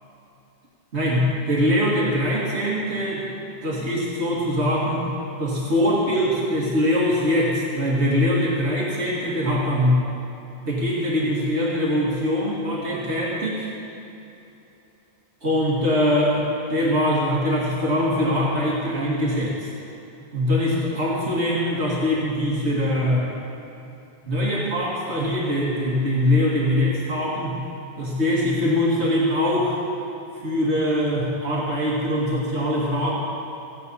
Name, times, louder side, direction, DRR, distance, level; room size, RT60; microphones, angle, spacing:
voice 1, 0.9-3.3 3.6-5.1 5.4-10.0 10.7-13.7 15.4-19.7 20.3-23.3 24.3-27.6 28.0-29.8 30.4-33.1, left 1 dB, 85° right, -5 dB, 2.5 m, -22 dB
17.0 x 8.7 x 5.6 m, 2.9 s
omnidirectional pair, 1.1 m